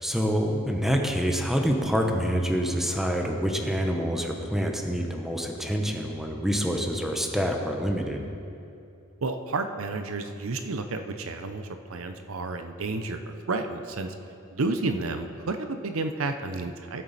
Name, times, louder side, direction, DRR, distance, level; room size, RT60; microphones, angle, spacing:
voice 1, 0.0-8.2, equal, ahead, 2 dB, 0.9 m, -26 dB
voice 2, 9.2-14.1 14.5-17.0, right 3 dB, 80° right, 7 dB, 0.7 m, -31 dB
17.0 x 7.5 x 4.2 m, 2.6 s
head